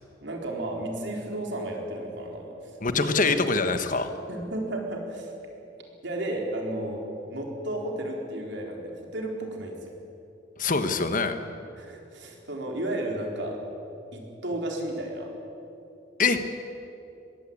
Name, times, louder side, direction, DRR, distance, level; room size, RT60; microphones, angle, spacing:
voice 1, 0.2-2.5 2.9-3.1 4.3-5.3 6.0-7.0 7.3-9.9 11.8-13.6 14.1-15.3, right 1 dB, 65° right, 0 dB, 4.1 m, -33 dB
voice 2, 2.8-4.1 10.6-11.4 16.2-16.4, left 4 dB, 45° left, 9 dB, 1.2 m, -24 dB
21.5 x 17.0 x 8.7 m, 2.8 s
head